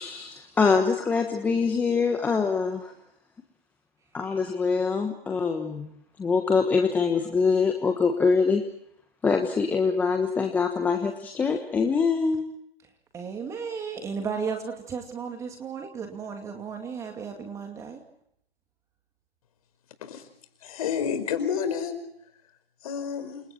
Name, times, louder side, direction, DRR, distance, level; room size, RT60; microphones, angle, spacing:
voice 1, 0.0-2.9 4.1-5.9 6.2-8.6 9.2-12.5, left 5 dB, 5° left, 5 dB, 1.2 m, -24 dB
voice 2, 13.1-18.0, right 6 dB, 10° right, 4 dB, 2.4 m, -34 dB
voice 3, 20.6-22.0 22.8-23.4, left 7 dB, 40° left, 10 dB, 5.2 m, -29 dB
29.0 x 27.0 x 4.4 m, 0.73 s
figure-of-eight pair, 145°, 29 cm